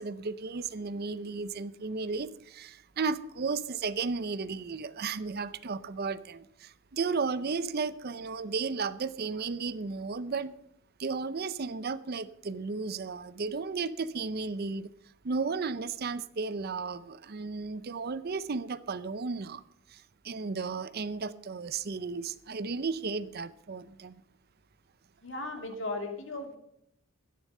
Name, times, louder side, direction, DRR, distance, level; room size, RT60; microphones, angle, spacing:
voice 1, 0.0-10.5 11.0-14.9 15.2-19.6 19.9-24.2, right 4 dB, 45° right, 0.5 m, -34 dB
voice 2, 25.2-26.6, left 2 dB, 60° left, 2.5 m, -36 dB
13.0 x 10.5 x 5.4 m
head